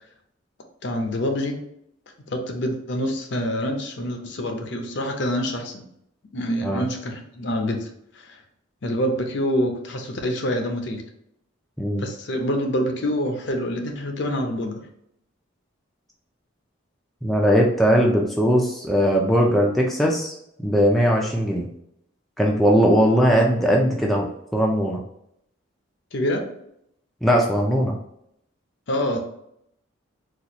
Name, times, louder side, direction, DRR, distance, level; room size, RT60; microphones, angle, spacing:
voice 1, 0.8-1.6 2.3-5.9 6.3-7.9 8.2-8.4 8.8-11.0 12.0-14.8 26.1-26.5 28.9-29.2, equal, 60° left, 4 dB, 0.6 m, -26 dB
voice 2, 17.2-20.3 20.6-21.7 22.4-25.0 27.2-28.0, equal, ahead, -2 dB, 0.4 m, -19 dB
4.2 x 2.3 x 2.9 m, 0.74 s
head